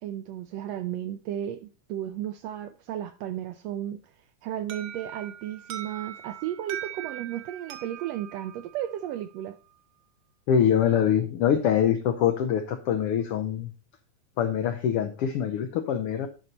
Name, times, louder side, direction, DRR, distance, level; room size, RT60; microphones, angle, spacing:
voice 1, 0.0-4.0 4.4-9.6, right 11 dB, 80° right, 1.5 m, -34 dB
Alarm, 4.7-9.5, right 11 dB, 65° right, 1.5 m, -41 dB
voice 2, 10.5-13.7 14.4-16.3, left 9 dB, 85° left, 1.3 m, -24 dB
11.5 x 5.3 x 4.2 m
omnidirectional pair, 3.5 m